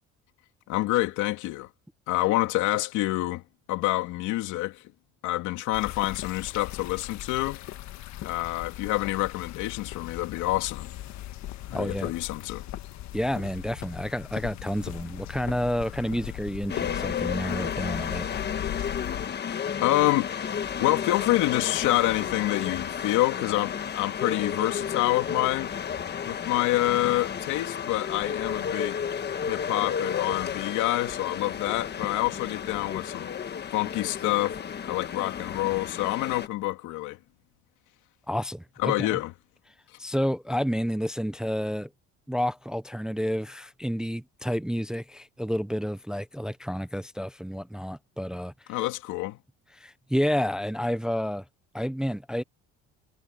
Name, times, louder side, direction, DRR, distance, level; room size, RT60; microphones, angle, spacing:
voice 1, 0.7-1.7 2.1-3.4 3.7-4.8 5.2-7.6 8.2-10.9 11.7-12.6 19.8-20.3 20.8-25.7 26.2-29.0 29.5-33.3 33.7-34.6 34.8-37.2 38.8-39.3 48.7-49.4, left 17 dB, 85° left, 2.7 m, -27 dB
sound 1, 5.7-19.3, left 14 dB, 65° left, 1.7 m, -39 dB
voice 2, 11.7-12.1 13.1-18.5 38.3-39.2 40.0-41.9 42.3-48.5 49.7-51.4 51.7-52.4, equal, ahead, 0.5 m, -30 dB
sound 2, 16.7-36.5, left 7 dB, 35° left, 1.4 m, -32 dB
cardioid pair, 135°, 29 cm